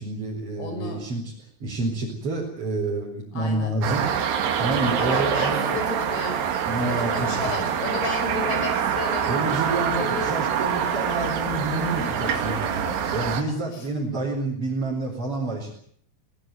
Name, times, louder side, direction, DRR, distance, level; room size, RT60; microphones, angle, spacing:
voice 1, 0.0-1.3 1.6-4.1 4.6-5.8 6.6-7.5 9.3-15.7, right 2 dB, 35° right, -3 dB, 5.1 m, -28 dB
voice 2, 0.6-1.1 3.3-3.8 4.8-6.5 6.8-9.4 9.9-10.3 12.0-12.6 13.7-13.9, left 3 dB, 75° left, 6 dB, 7.5 m, -32 dB
sound 1, 3.8-13.4, right 8 dB, 85° right, 4.2 m, -25 dB
21.0 x 19.0 x 9.3 m, 0.63 s
omnidirectional pair, 4.6 m